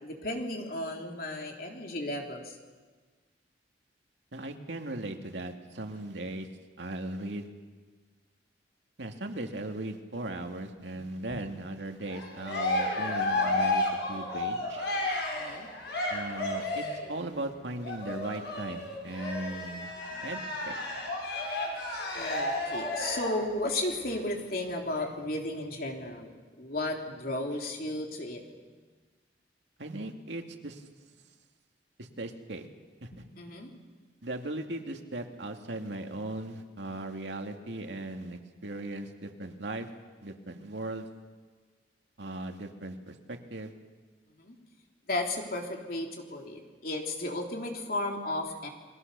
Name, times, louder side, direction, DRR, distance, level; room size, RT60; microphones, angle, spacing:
voice 1, 0.0-2.5 5.9-6.0 11.3-11.4 14.6-14.7 15.3-15.7 22.1-26.3 26.6-28.4 33.1-33.7 44.4-44.6 45.1-48.7, left 1 dB, 55° left, 1 dB, 3.5 m, -34 dB
voice 2, 4.3-6.5 6.8-7.5 9.0-14.9 16.1-19.9 20.2-20.4 20.6-20.8 29.8-30.8 32.0-32.7 33.0-33.1 34.2-39.9 40.2-41.1 42.2-43.7, right 2 dB, 80° right, 4 dB, 2.3 m, -38 dB
Cheering, 12.1-17.1 17.8-23.4, left 2 dB, 70° left, 6.0 m, -32 dB
29.0 x 22.0 x 6.9 m, 1.4 s
head